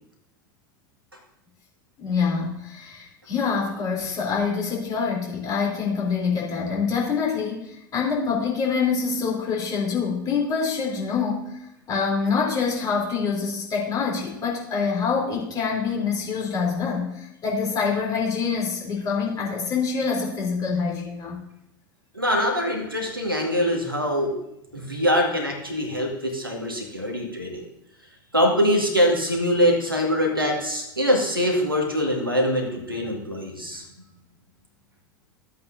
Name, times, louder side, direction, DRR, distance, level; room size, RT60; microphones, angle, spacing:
voice 1, 2.0-11.5 11.9-21.4, left 5 dB, 30° left, -3 dB, 3.4 m, -25 dB
voice 2, 22.1-24.3 24.7-27.7 28.3-33.8, equal, 90° right, 0 dB, 1.9 m, -23 dB
14.0 x 8.2 x 2.7 m, 0.83 s
figure-of-eight pair, 85°, 11 cm